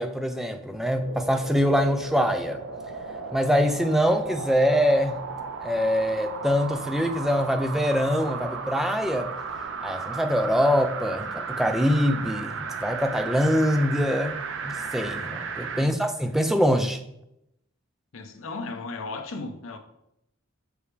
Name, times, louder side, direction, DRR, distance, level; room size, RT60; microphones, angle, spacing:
voice 1, 0.0-2.6 3.3-5.2 5.6-9.3 9.8-14.4 14.6-17.0, equal, ahead, 0.4 m, -24 dB
sound 1, 0.9-15.9 16.3-16.4, right 5 dB, 60° right, 0.6 m, -35 dB
voice 2, 15.7-16.1 18.1-19.8, left 3 dB, 75° left, 0.7 m, -36 dB
6.0 x 5.0 x 3.3 m
head